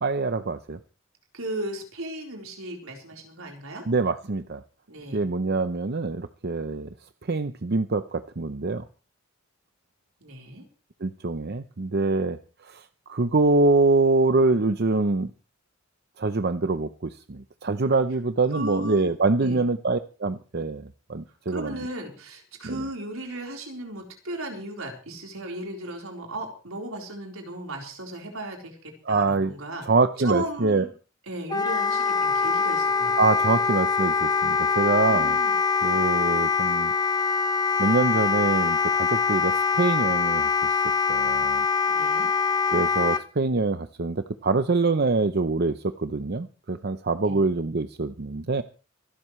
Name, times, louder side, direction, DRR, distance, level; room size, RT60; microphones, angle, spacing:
voice 1, 0.0-0.8 3.9-4.6 5.1-6.9 7.2-8.8 11.0-15.3 16.2-21.8 22.6-22.8 29.1-29.5 29.8-30.8 33.2-35.4 35.8-36.9 37.8-40.8 41.1-41.6 42.7-48.6, right 3 dB, 50° right, 10 dB, 0.7 m, -25 dB
voice 2, 1.3-3.8 4.9-5.3 10.2-10.7 18.5-19.1 19.4-19.7 21.5-29.9 30.2-30.9 31.3-33.1 35.1-35.5 41.9-42.3 47.2-47.4, right 1 dB, 80° right, 1 dB, 4.2 m, -35 dB
Wind instrument woodwind instrument, 31.5-43.2, left 5 dB, 20° left, 0.8 m, -23 dB
26.0 x 12.0 x 3.2 m, 0.35 s
head